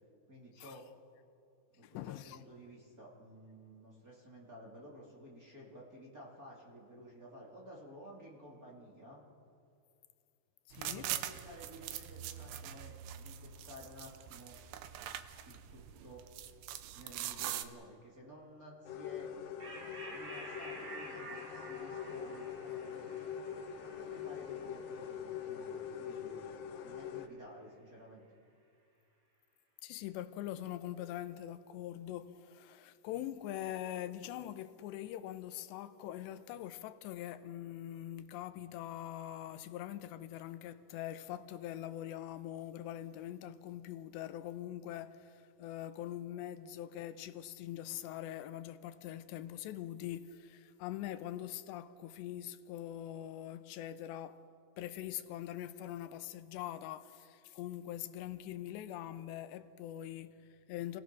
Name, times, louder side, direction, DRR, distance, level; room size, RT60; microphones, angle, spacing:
voice 1, 0.3-0.8 1.7-9.2 10.8-14.6 15.4-16.2 16.9-19.3 20.1-23.3 23.8-26.4 26.8-28.3, equal, 25° right, 2.9 m, -53 dB
voice 2, 1.8-2.4 10.7-11.1 29.8-54.4 54.8-61.0, left 12 dB, 90° left, 3.0 m, -43 dB
sound 1, 10.7-17.6, right 11 dB, 75° right, 2.8 m, -43 dB
sound 2, 18.8-27.3, left 8 dB, 70° left, 2.5 m, -43 dB
sound 3, 19.6-26.5, right 2 dB, 45° right, 4.9 m, -51 dB
30.0 x 17.0 x 6.2 m
omnidirectional pair, 4.9 m